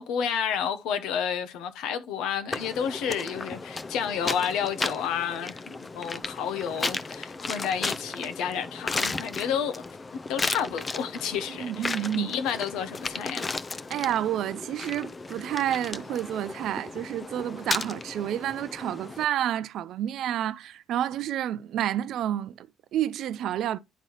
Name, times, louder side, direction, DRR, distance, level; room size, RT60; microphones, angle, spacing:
voice 1, 0.0-9.8 10.1-13.5, left 8 dB, 80° left, 0.8 m, -31 dB
sound 1, 2.5-19.3, left 3 dB, 35° left, 0.5 m, -35 dB
voice 2, 11.6-12.3 13.9-23.8, right 11 dB, 75° right, 0.4 m, -29 dB
10.0 x 3.8 x 3.0 m
supercardioid pair, 55°, 0 cm